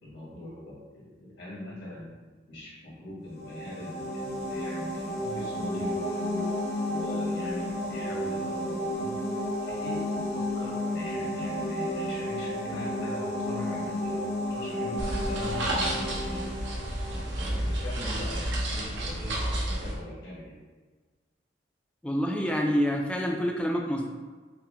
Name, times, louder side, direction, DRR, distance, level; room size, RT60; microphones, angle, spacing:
voice 1, 0.0-2.2 2.5-9.2 9.7-16.5 17.1-20.6, left 1 dB, 85° left, -6 dB, 1.4 m, -41 dB
sound 1, 3.3-17.9, left 1 dB, 60° left, 0.8 m, -32 dB
sound 2, 15.0-20.0, right 1 dB, 80° right, 0.7 m, -31 dB
voice 2, 22.0-24.1, equal, 5° left, 1 dB, 0.3 m, -27 dB
5.4 x 2.1 x 2.5 m, 1.4 s
head